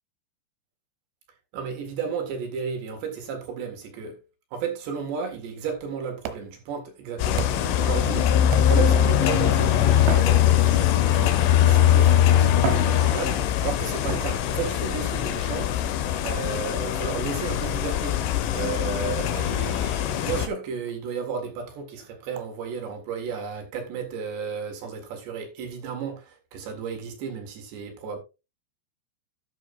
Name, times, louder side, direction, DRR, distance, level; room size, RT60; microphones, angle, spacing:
voice 1, 1.5-4.2 4.5-15.7 16.2-18.2 18.5-28.2, right 6 dB, 70° right, 3.8 m, -33 dB
sound 1, 5.7-7.8 8.5-9.1 10.0-11.1 11.9-12.0 12.5-13.6 14.1-14.8 16.2-16.6 17.7-17.8 18.5-18.6 18.9-19.0 19.4-19.5 19.8-19.9 20.4-20.5 20.9-21.0 21.4-21.5 22.4-22.5, right 10 dB, 90° right, 3.5 m, -36 dB
sound 2, 7.2-20.5, left 10 dB, 85° left, 3.6 m, -21 dB
12.0 x 10.5 x 2.5 m
omnidirectional pair, 5.5 m